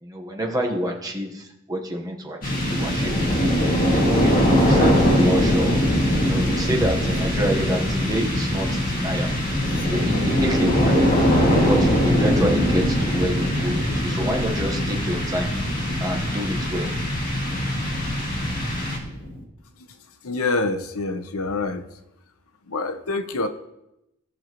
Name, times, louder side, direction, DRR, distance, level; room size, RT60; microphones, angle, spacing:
voice 1, 0.0-3.4 3.9-9.3 9.9-11.2 11.6-15.5 16.0-16.9, equal, 15° right, 1 dB, 1.1 m, -28 dB
sound 1, 2.4-19.4, equal, 40° left, 2.1 m, -21 dB
voice 2, 20.2-21.9 22.7-23.5, left 3 dB, 80° left, 8 dB, 0.8 m, -26 dB
16.5 x 6.3 x 3.0 m, 0.86 s
head